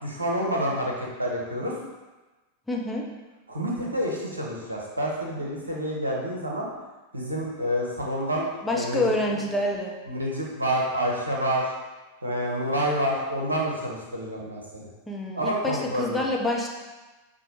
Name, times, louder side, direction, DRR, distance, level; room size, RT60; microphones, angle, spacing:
voice 1, 0.0-1.7 3.5-6.7 7.1-9.4 10.1-11.7 12.2-14.8 15.4-16.2, equal, 80° right, -2 dB, 0.8 m, -28 dB
voice 2, 2.7-3.1 8.6-10.0 15.1-16.7, left 1 dB, 5° left, -2 dB, 0.6 m, -27 dB
6.1 x 2.2 x 2.9 m, 1.2 s
figure-of-eight pair, 90°, 0 cm